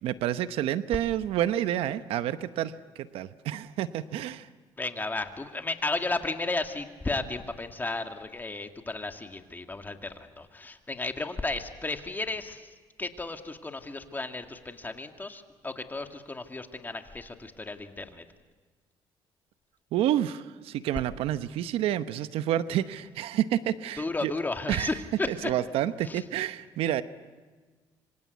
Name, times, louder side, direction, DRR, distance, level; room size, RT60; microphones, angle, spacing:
voice 1, 0.0-4.5 19.9-24.3 24.7-24.9 25.3-27.0, right 12 dB, 80° right, 12 dB, 0.9 m, -29 dB
voice 2, 4.8-18.2 24.0-25.3 26.0-26.2, left 3 dB, 20° left, 6 dB, 2.3 m, -34 dB
26.0 x 25.5 x 8.4 m, 1.3 s
cardioid pair, 85°, 10 cm